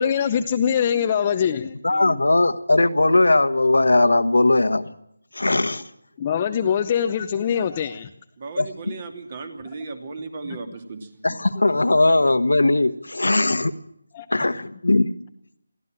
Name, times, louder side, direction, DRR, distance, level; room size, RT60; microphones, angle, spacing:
voice 1, 0.0-2.2 6.2-8.1 10.4-10.6 11.6-11.8 14.1-14.5, left 8 dB, 25° left, 7 dB, 0.7 m, -24 dB
voice 2, 1.8-4.9 5.3-5.8 8.6-9.0 11.2-13.7 14.3-15.1, left 2 dB, 75° left, 11 dB, 1.3 m, -19 dB
voice 3, 8.4-11.0, right 4 dB, 35° right, 6 dB, 2.7 m, -35 dB
22.5 x 16.0 x 7.5 m, 0.76 s
figure-of-eight pair, 160°, 0 cm